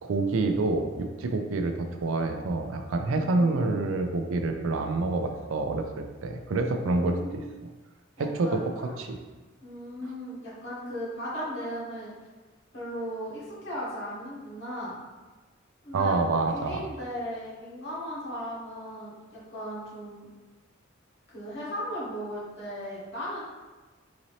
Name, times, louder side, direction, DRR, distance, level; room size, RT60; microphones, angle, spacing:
voice 1, 0.0-7.4 8.2-9.2 15.9-16.8, right 3 dB, 80° right, 5 dB, 0.4 m, -27 dB
voice 2, 3.1-4.0 6.8-7.5 8.2-8.9 9.6-12.1 12.7-15.0 15.8-16.2 16.5-20.3 21.3-23.4, equal, 60° left, -7 dB, 1.4 m, -37 dB
3.9 x 2.7 x 3.1 m, 1.3 s
head